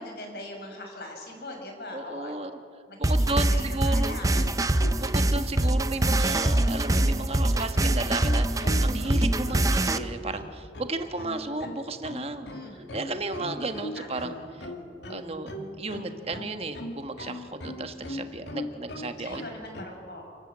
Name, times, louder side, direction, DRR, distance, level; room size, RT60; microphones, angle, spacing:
voice 1, 0.0-2.3 2.9-4.6 12.4-13.6 14.0-14.3 14.7-14.9 19.2-20.2, left 1 dB, 65° left, 2 dB, 5.3 m, -42 dB
voice 2, 1.9-2.5 3.0-4.2 5.0-12.5 12.9-14.7 15.1-19.4, right 2 dB, 35° right, 7 dB, 1.3 m, -34 dB
sound 1, 3.0-10.0, right 1 dB, 20° right, 0.6 m, -24 dB
sound 2, 4.3-19.8, left 1 dB, 80° left, 2.5 m, -39 dB
28.5 x 13.0 x 8.8 m, 2.3 s
head